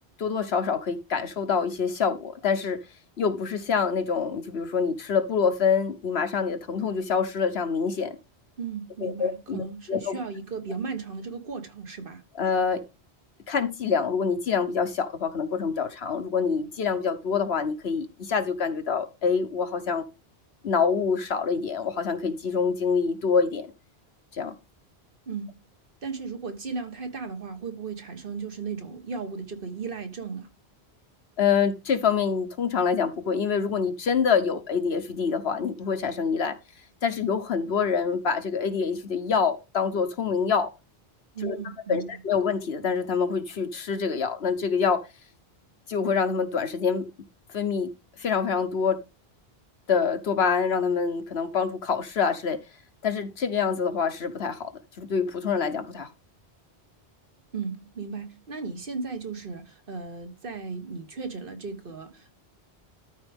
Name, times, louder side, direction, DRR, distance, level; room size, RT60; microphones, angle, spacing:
voice 1, 0.2-2.8 3.2-8.2 9.0-10.2 12.4-12.8 13.5-20.0 20.6-23.7 24.3-24.5 31.4-36.5 37.0-40.7 41.4-41.6 41.9-45.0 45.9-47.1 47.5-47.9 48.2-49.0 49.9-52.6 53.0-54.7 55.0-56.1, left 6 dB, 75° left, 1.3 m, -26 dB
voice 2, 8.6-12.2 25.3-25.5 26.0-30.5 41.3-42.2 57.5-62.3, right 5 dB, 55° right, 1.5 m, -35 dB
13.0 x 4.6 x 3.5 m
omnidirectional pair, 1.1 m